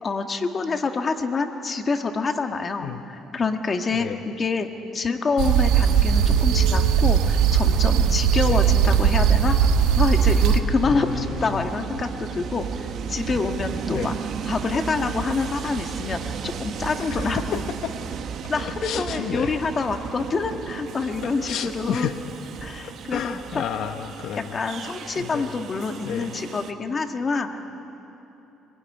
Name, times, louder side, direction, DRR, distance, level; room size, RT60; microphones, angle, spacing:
voice 1, 0.0-4.7 4.9-9.6 10.0-12.6 13.1-14.1 14.5-17.6 18.5-22.1 22.6-23.2 23.5-23.6 24.4-27.7, left 4 dB, 30° left, 5 dB, 1.7 m, -26 dB
voice 2, 3.9-4.2 8.4-8.6 10.8-11.7 13.9-14.1 17.1-17.9 18.5-19.5 21.2-22.2 23.1-24.6 25.2-25.6 26.0-26.3, left 9 dB, 65° left, 7 dB, 0.9 m, -31 dB
sound 1, 5.4-10.6, right 8 dB, 90° right, 1.7 m, -19 dB
Train, 7.7-26.7, right 7 dB, 55° right, 1.2 m, -34 dB
25.0 x 22.0 x 9.9 m, 3.0 s
cardioid pair, 130°, 0 cm